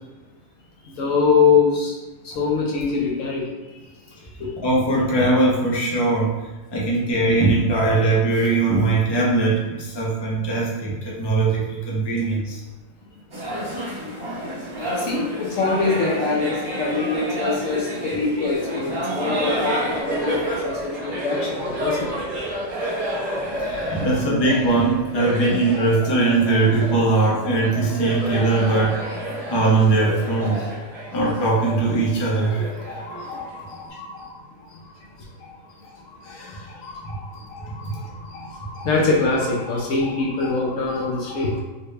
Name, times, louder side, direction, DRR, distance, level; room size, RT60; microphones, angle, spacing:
voice 1, 0.8-2.0 2.2-3.8 4.4-4.6 15.0-22.1 32.9-34.9 35.2-35.3 35.6-41.6, left 4 dB, 65° left, -3 dB, 0.9 m, -24 dB
voice 2, 4.6-12.6 23.6-29.0 29.5-30.6 31.1-32.7 37.8-38.0, right 2 dB, 40° left, -5 dB, 0.3 m, -20 dB
sound 1, 13.3-20.0, right 1 dB, 30° right, 0.6 m, -29 dB
Laughter, 18.9-33.9, right 1 dB, 45° right, 1.4 m, -31 dB
4.0 x 2.2 x 3.2 m, 1.2 s
omnidirectional pair, 1.8 m